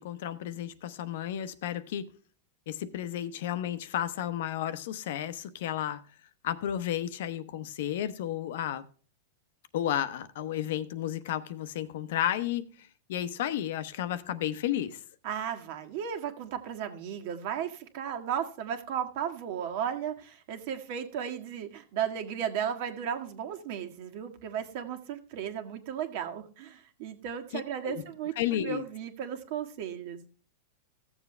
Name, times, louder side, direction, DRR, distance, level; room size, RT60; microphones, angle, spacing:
voice 1, 0.0-2.1 2.7-6.0 6.4-8.8 9.7-15.0 27.8-28.0 28.4-28.8, left 11 dB, 65° left, 0.9 m, -32 dB
voice 2, 15.2-30.2, right 8 dB, 55° right, 1.7 m, -35 dB
15.0 x 7.2 x 3.3 m
supercardioid pair, 145°, 0 cm